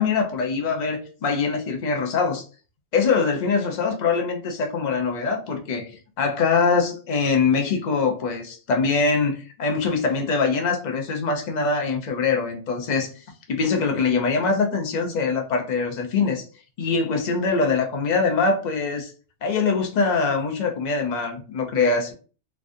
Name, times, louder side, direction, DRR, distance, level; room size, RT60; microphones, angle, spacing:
voice 1, 0.0-2.4 2.9-5.9 6.2-13.1 13.5-16.4 16.8-19.1 19.4-22.1, left 4 dB, 45° left, 3 dB, 0.6 m, -23 dB
3.2 x 2.4 x 2.6 m, 0.37 s
omnidirectional pair, 1.2 m